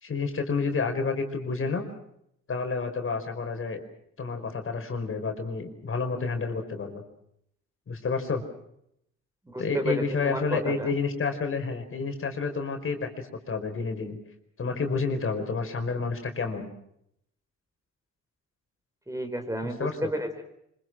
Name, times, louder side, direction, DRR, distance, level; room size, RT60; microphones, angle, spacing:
voice 1, 0.0-1.9 2.5-3.8 4.2-7.0 7.9-8.4 9.6-14.2 14.6-16.7 19.6-20.1, left 4 dB, 45° left, 5 dB, 5.0 m, -30 dB
voice 2, 9.5-10.9 19.1-20.4, right 1 dB, 10° right, 6 dB, 4.2 m, -32 dB
25.5 x 24.5 x 6.3 m, 0.76 s
cardioid pair, 90°, 30 cm